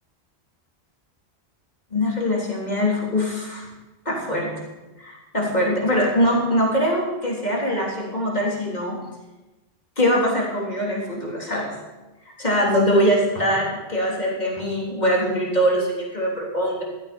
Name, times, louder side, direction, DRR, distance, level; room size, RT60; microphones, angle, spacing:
voice 1, 1.9-3.7 4.1-4.6 5.0-9.0 10.0-11.7 12.4-16.8, equal, 40° left, -3 dB, 3.7 m, -22 dB
15.0 x 13.0 x 5.4 m, 1.1 s
omnidirectional pair, 1.1 m